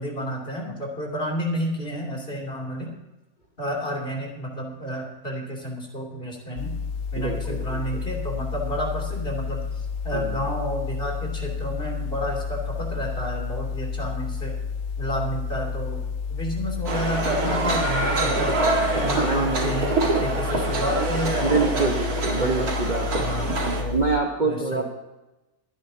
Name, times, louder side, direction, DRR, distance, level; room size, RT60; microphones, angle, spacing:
voice 1, 0.0-2.9 3.6-6.7 7.1-14.6 15.0-16.0 16.3-18.6 18.9-21.9 22.3-22.7 23.2-24.0 24.4-24.8, equal, 35° left, -1 dB, 3.3 m, -30 dB
sound 1, 6.6-24.2, left 6 dB, 65° left, 1.0 m, -31 dB
voice 2, 7.1-7.8 10.1-10.4 19.1-19.8 21.4-23.4 23.7-24.8, right 4 dB, 35° right, 1 dB, 1.2 m, -26 dB
sound 2, 16.9-23.8, right 3 dB, 85° right, 2.4 m, -25 dB
22.5 x 10.5 x 2.9 m, 1.0 s
omnidirectional pair, 1.6 m